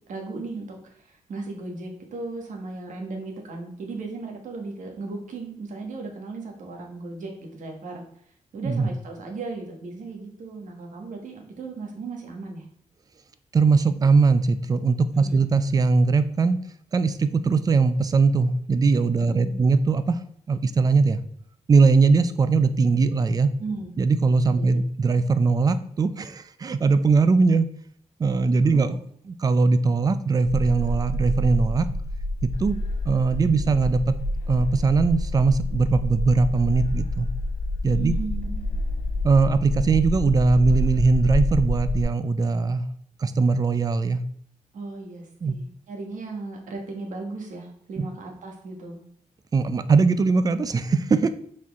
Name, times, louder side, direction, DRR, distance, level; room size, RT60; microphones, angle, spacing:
voice 1, 0.1-8.0 8.5-12.6 15.2-15.5 19.2-19.7 23.6-24.0 24.5-24.8 28.6-29.0 38.0-38.8 44.7-49.0, right 3 dB, 80° right, 2 dB, 1.4 m, -36 dB
voice 2, 8.6-8.9 13.5-16.6 16.9-20.2 20.5-21.2 21.7-23.5 24.0-27.7 28.2-29.0 29.3-31.9 32.4-32.8 33.1-34.2 34.5-37.3 37.8-38.1 39.2-42.8 43.2-44.2 45.4-45.6 48.0-48.1 49.5-51.3, right 4 dB, 30° right, 12 dB, 0.4 m, -20 dB
sound 1, 30.4-42.0, left 1 dB, 85° left, 1.0 m, -28 dB
6.0 x 4.4 x 3.6 m, 0.67 s
wide cardioid pair, 150°, 13 cm